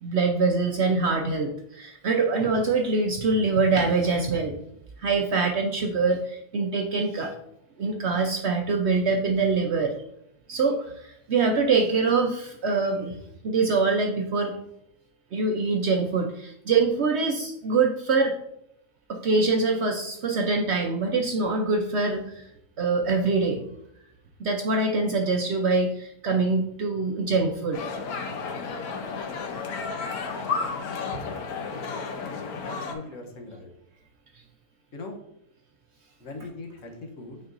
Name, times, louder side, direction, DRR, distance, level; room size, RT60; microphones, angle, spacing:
voice 1, 0.0-4.5 5.0-7.4 7.8-9.9 10.5-13.2 13.4-14.5 15.3-18.3 19.1-22.5 22.8-23.6 24.4-27.8, right 4 dB, 60° right, 2 dB, 0.8 m, -24 dB
sound 1, 27.7-32.9, left 5 dB, 75° left, 1.3 m, -32 dB
voice 2, 32.6-33.7 34.9-35.2 36.2-37.4, left 3 dB, 60° left, 3 dB, 1.2 m, -40 dB
8.7 x 4.5 x 2.6 m, 0.77 s
omnidirectional pair, 1.6 m